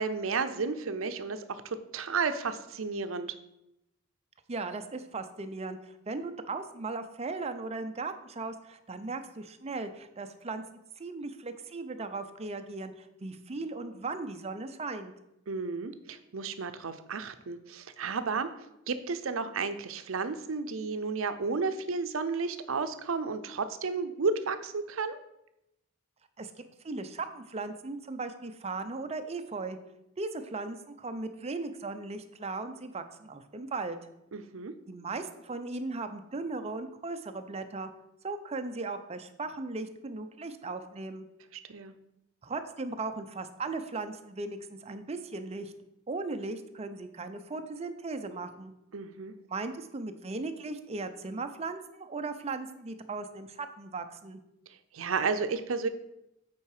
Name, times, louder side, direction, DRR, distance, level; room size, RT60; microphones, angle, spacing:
voice 1, 0.0-3.4 15.5-18.5 18.9-25.2 34.3-34.7 41.7-41.9 48.9-49.3 54.9-55.9, right 4 dB, 85° right, 10 dB, 0.6 m, -32 dB
voice 2, 4.5-10.6 11.0-15.1 26.4-29.8 30.2-34.0 34.9-37.9 38.2-41.3 42.4-45.7 46.1-48.7 49.5-54.4, right 3 dB, 30° right, 8 dB, 0.6 m, -37 dB
8.4 x 4.6 x 4.9 m, 0.85 s
head